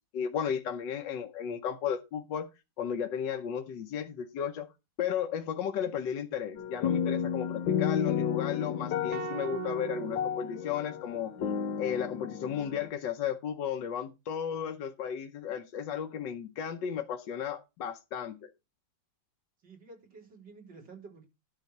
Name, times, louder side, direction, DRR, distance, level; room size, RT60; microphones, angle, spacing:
voice 1, 0.1-2.5 2.8-4.7 5.0-11.4 11.8-18.5, left 8 dB, 75° left, 1.5 m, -34 dB
sound 1, 6.6-12.9, left 8 dB, 90° left, 1.7 m, -32 dB
sound 2, 9.1-11.4, right 13 dB, 90° right, 1.4 m, -42 dB
voice 2, 19.6-21.2, right 4 dB, 75° right, 4.5 m, -51 dB
11.5 x 3.9 x 7.8 m
omnidirectional pair, 2.0 m